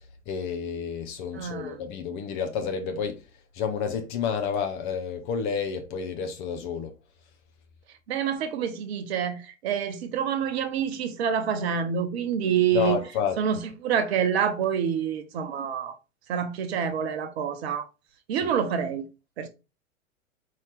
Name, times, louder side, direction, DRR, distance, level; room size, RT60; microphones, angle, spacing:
voice 1, 0.3-3.2 3.5-6.9 12.7-13.4 18.3-18.5, left 6 dB, 25° left, 0.6 m, -30 dB
voice 2, 1.3-1.8 8.1-13.0 13.4-16.0 16.3-17.9 18.3-19.1 19.4-19.5, right 8 dB, 50° right, 0.9 m, -27 dB
4.5 x 2.8 x 3.4 m
figure-of-eight pair, 95°, 42 cm